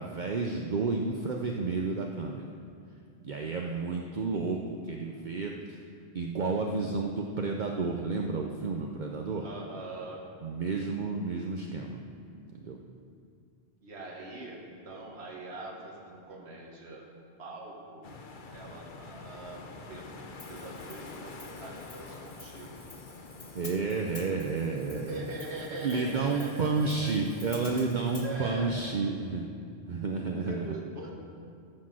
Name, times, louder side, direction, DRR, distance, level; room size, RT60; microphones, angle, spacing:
voice 1, 0.0-2.5 3.2-5.8 6.1-9.4 10.4-12.0 12.6-12.8 23.5-25.2 25.8-29.5 29.9-30.8, right 4 dB, 50° right, 1 dB, 0.8 m, -31 dB
voice 2, 3.5-4.0 9.4-10.3 13.8-18.1 18.5-22.8 24.9-27.1 28.2-28.7 30.5-31.1, right 2 dB, 85° right, -1 dB, 1.7 m, -42 dB
sound 1, 18.0-28.9, left 3 dB, 55° left, 0.9 m, -48 dB
Hi-hat, 20.4-28.3, left 2 dB, 35° left, 1.4 m, -50 dB
13.5 x 6.5 x 6.3 m, 2.4 s
omnidirectional pair, 1.1 m